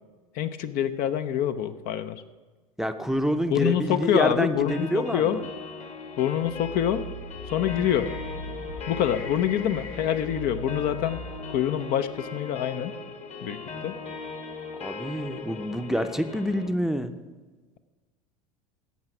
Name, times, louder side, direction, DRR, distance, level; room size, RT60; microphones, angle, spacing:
voice 1, 0.3-2.2 3.5-5.4 6.2-7.1 7.5-8.1 8.9-11.2 11.5-12.9 13.4-14.0, left 10 dB, 55° left, 11 dB, 0.7 m, -26 dB
voice 2, 2.8-5.4 14.8-17.1, equal, ahead, 9 dB, 0.6 m, -27 dB
sound 1, 4.7-16.7, left 4 dB, 35° left, 1.4 m, -39 dB
sound 2, 6.4-11.7, left 1 dB, 85° left, 2.5 m, -39 dB
15.5 x 5.7 x 6.0 m, 1.3 s
hypercardioid pair, 90°, 18 cm